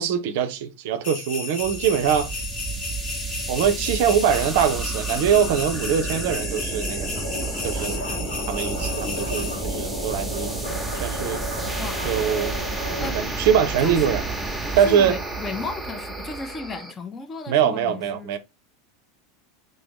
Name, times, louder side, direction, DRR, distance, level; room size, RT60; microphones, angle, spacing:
voice 1, 0.0-2.4 3.5-7.3 7.6-8.0 8.5-10.7 11.0-11.4 12.0-12.6 13.0-14.2 14.8-15.2 17.5-18.4, right 8 dB, 60° right, 0.5 m, -23 dB
sound 1, 1.0-9.5, left 4 dB, 55° left, 1.1 m, -33 dB
sound 2, 1.6-16.9, right 3 dB, ahead, 0.9 m, -31 dB
sound 3, 7.1-13.1, left 1 dB, 75° left, 1.4 m, -34 dB
voice 2, 13.8-14.2 14.8-18.4, left 4 dB, 25° left, 0.5 m, -34 dB
2.9 x 2.7 x 3.7 m
hypercardioid pair, 85°, 0 cm